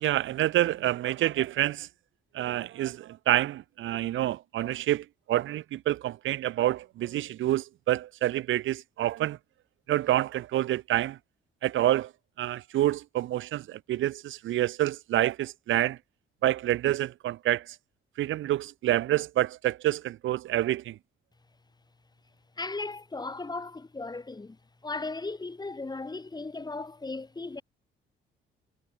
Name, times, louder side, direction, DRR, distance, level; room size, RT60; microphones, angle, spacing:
voice 1, 0.0-1.9 2.3-9.4 9.9-11.2 11.6-12.1 12.4-16.0 16.4-17.6 18.2-21.0, right 14 dB, 75° right, 1.1 m, -27 dB
voice 2, 22.6-27.6, left 3 dB, 20° left, 3.0 m, -37 dB
cardioid pair, 90°, 20 cm